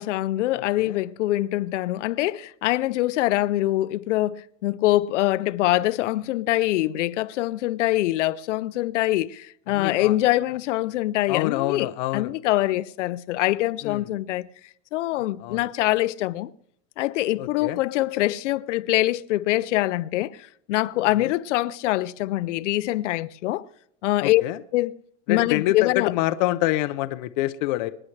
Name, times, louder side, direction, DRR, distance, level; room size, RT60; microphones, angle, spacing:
voice 1, 0.0-14.5 14.9-16.5 17.0-23.7 24.0-24.4 24.7-24.9 25.3-26.1, left 16 dB, 85° left, 0.6 m, -24 dB
voice 2, 9.7-10.1 11.3-12.3 13.8-14.0 15.4-15.6 17.4-17.8 24.2-24.6 25.3-27.9, left 16 dB, 40° left, 0.5 m, -26 dB
25.5 x 9.9 x 3.2 m
supercardioid pair, 170°, 35 cm